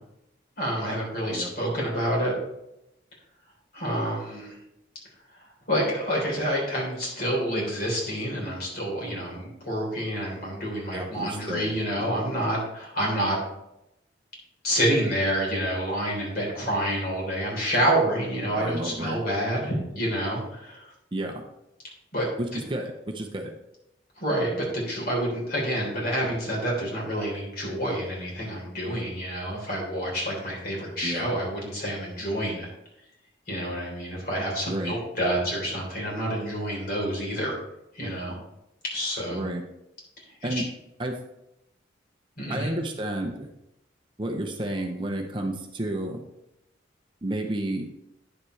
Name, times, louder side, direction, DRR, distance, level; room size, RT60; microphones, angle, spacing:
voice 1, 0.6-2.3 3.7-4.6 5.7-13.4 14.6-20.9 22.1-22.3 22.5-22.6 24.2-32.7 33.5-37.6 37.9-38.4 38.9-39.4 40.5-40.6 42.4-42.7, equal, 50° left, -2 dB, 3.6 m, -28 dB
voice 2, 10.9-12.1 18.6-19.2 21.1-21.4 22.4-23.5 31.0-31.3 34.7-35.0 39.3-39.6 40.4-40.6 41.0-41.2 42.5-43.5 44.2-46.2 47.2-47.9, right 1 dB, 25° right, 3 dB, 0.7 m, -31 dB
9.9 x 7.3 x 3.2 m, 0.86 s
head